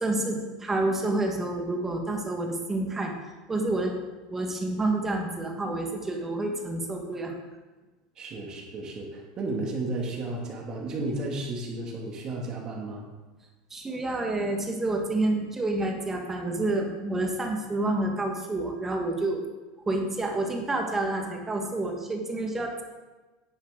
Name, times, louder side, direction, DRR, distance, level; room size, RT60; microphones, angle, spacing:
voice 1, 0.0-3.1 3.5-3.9 4.3-7.3 13.7-19.4 19.9-22.8, right 2 dB, 15° right, 2 dB, 1.5 m, -28 dB
voice 2, 8.2-13.0, right 2 dB, 30° right, 0 dB, 2.2 m, -33 dB
10.5 x 9.4 x 3.8 m, 1.2 s
supercardioid pair, 145°, 2 cm